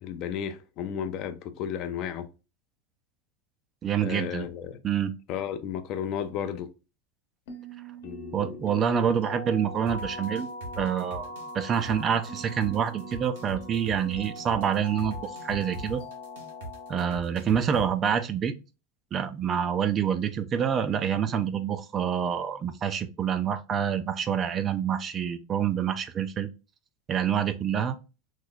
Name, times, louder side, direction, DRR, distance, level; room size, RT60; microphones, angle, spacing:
voice 1, 0.0-2.3 4.0-4.8 5.3-6.7 8.0-8.6, left 8 dB, 45° left, 0.4 m, -33 dB
voice 2, 3.8-4.5 4.8-5.1 8.3-10.5 10.8-11.3 11.5-16.0 16.9-18.5 19.1-26.5 27.1-28.0, right 8 dB, 25° right, 0.3 m, -27 dB
sound 1, 7.5-17.1, left 1 dB, 75° left, 0.9 m, -41 dB
sound 2, 9.9-17.8, right 1 dB, 80° right, 1.2 m, -40 dB
3.1 x 2.2 x 3.8 m
supercardioid pair, 140°, 0 cm